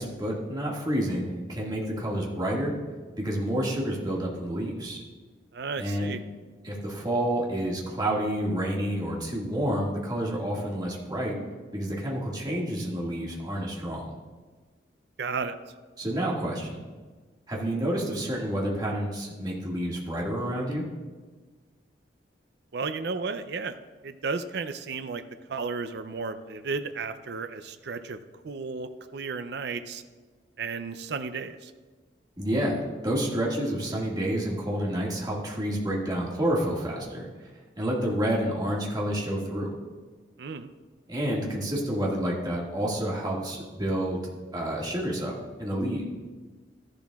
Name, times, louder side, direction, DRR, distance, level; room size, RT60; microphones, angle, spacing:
voice 1, 0.0-2.8 3.1-5.0 5.8-6.1 6.6-11.3 11.7-14.1 16.0-16.8 17.5-20.8 32.4-37.3 37.8-39.7 41.1-44.2 44.5-45.3 45.6-46.0, right 1 dB, 25° right, -3 dB, 1.9 m, -29 dB
voice 2, 5.5-6.2 15.2-15.6 22.7-23.8 24.0-25.2 25.5-28.2 28.4-30.0 30.6-31.7 40.4-40.7, right 4 dB, 65° right, 9 dB, 0.5 m, -33 dB
13.5 x 11.5 x 2.4 m, 1.4 s
head